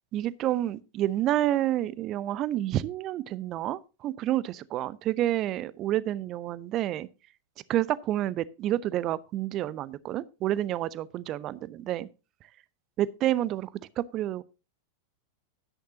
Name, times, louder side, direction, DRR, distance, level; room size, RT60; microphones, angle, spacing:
voice 1, 0.1-7.1 7.7-12.1 13.0-13.7 14.0-14.4, right 13 dB, 35° right, 0.6 m, -29 dB
12.0 x 10.5 x 2.8 m
figure-of-eight pair, 90°, 0 cm